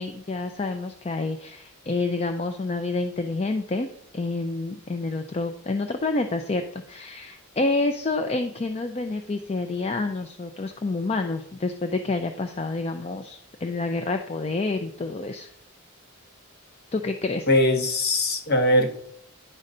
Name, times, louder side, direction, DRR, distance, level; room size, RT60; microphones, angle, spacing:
voice 1, 0.0-3.9 4.1-15.5 16.9-17.5, left 3 dB, 30° left, 7 dB, 0.4 m, -28 dB
voice 2, 17.5-19.0, left 1 dB, 50° left, 4 dB, 1.2 m, -21 dB
10.0 x 3.9 x 5.3 m, 0.69 s
head